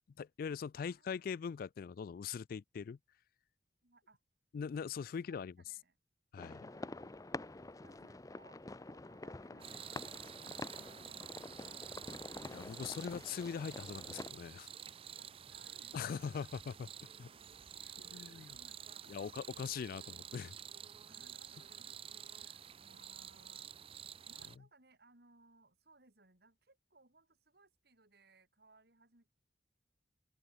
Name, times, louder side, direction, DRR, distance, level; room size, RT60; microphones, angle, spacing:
voice 1, 0.2-3.0 4.5-5.5 6.3-6.6 12.5-14.7 15.9-16.9 17.2-17.3 18.1-18.5 19.1-20.6, left 6 dB, 55° left, 0.3 m, -41 dB
voice 2, 0.8-1.3 3.8-4.2 4.7-6.0 6.6-7.2 7.7-8.6 8.9-13.0 15.2-16.4 17.8-19.2 21.0-22.0 22.3-23.7 24.2-29.3, right 2 dB, 65° right, 5.5 m, -66 dB
sound 1, 6.4-14.3, left 2 dB, 20° left, 0.7 m, -48 dB
sound 2, 9.6-24.6, right 8 dB, 35° right, 0.5 m, -50 dB
open air
head